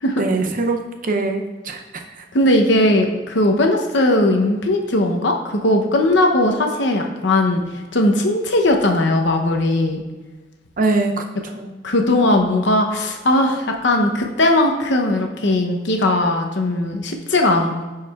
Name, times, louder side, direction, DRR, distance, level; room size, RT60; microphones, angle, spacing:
voice 1, 0.2-1.8 2.2-2.3 10.8-11.8, right 3 dB, 45° right, 4 dB, 0.6 m, -23 dB
voice 2, 2.3-7.6 7.9-10.0 11.8-17.8, left 1 dB, 70° left, 3 dB, 0.8 m, -18 dB
10.0 x 4.7 x 2.4 m, 1.2 s
head